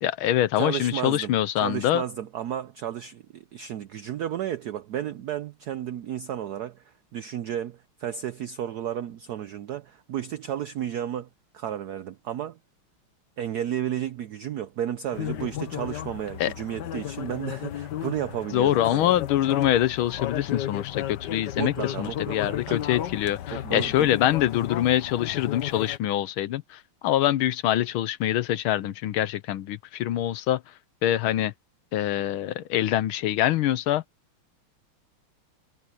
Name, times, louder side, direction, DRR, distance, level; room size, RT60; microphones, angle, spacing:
voice 1, 0.0-2.0 16.4-16.5 18.5-30.6 31.0-31.5 31.9-34.0, left 12 dB, 75° left, 1.6 m, -25 dB
voice 2, 0.6-1.3 1.6-11.3 11.5-12.6 13.4-19.2 21.6-22.8 23.5-24.1, right 10 dB, 80° right, 0.9 m, -33 dB
sound 1, 15.1-26.0, left 12 dB, 60° left, 1.4 m, -34 dB
omnidirectional pair, 2.4 m